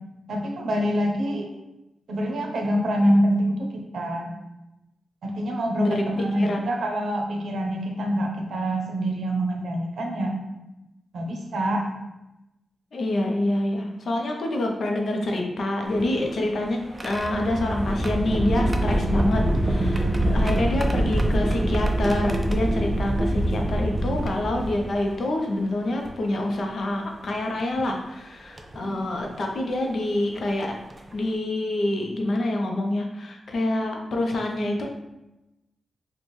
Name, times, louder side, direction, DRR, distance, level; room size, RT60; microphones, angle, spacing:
voice 1, 0.3-1.5 2.1-4.4 5.2-10.4 11.1-11.9 28.8-29.1, equal, 80° right, 2 dB, 0.6 m, -25 dB
voice 2, 12.9-30.7 31.1-34.9, left 1 dB, 60° left, 2 dB, 0.6 m, -26 dB
sound 1, 15.8-25.1 26.0-26.1 27.6-27.8 28.6-28.8 30.4-30.5 30.9-31.1, right 1 dB, 20° right, 0.3 m, -25 dB
4.3 x 2.2 x 3.1 m, 0.96 s
wide cardioid pair, 125°, 0 cm